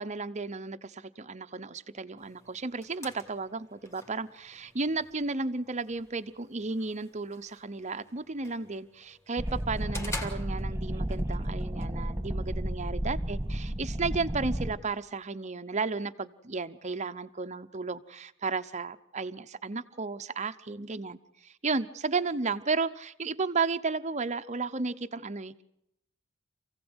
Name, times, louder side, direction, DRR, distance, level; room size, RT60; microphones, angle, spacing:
voice 1, 0.0-25.6, right 4 dB, 35° right, 11 dB, 0.8 m, -33 dB
sound 1, 2.2-11.2, left 1 dB, 15° left, 2.6 m, -47 dB
sound 2, 9.4-14.7, right 1 dB, 10° right, 1.6 m, -32 dB
27.5 x 16.5 x 8.1 m, 0.80 s
head